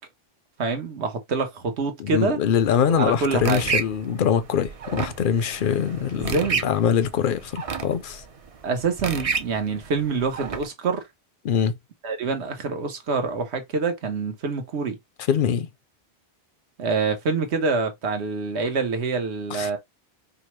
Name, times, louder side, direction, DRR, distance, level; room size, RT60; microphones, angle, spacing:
voice 1, 0.6-2.4 3.0-3.7 6.2-6.7 8.6-11.0 12.0-15.0 16.8-19.8, right 4 dB, 75° right, 1.2 m, -26 dB
voice 2, 2.0-8.2 11.4-11.8 15.3-15.7 19.5-19.8, left 8 dB, 60° left, 0.6 m, -23 dB
sound 1, 2.6-10.7, right 5 dB, 45° right, 0.5 m, -32 dB
4.9 x 2.2 x 3.0 m
omnidirectional pair, 1.1 m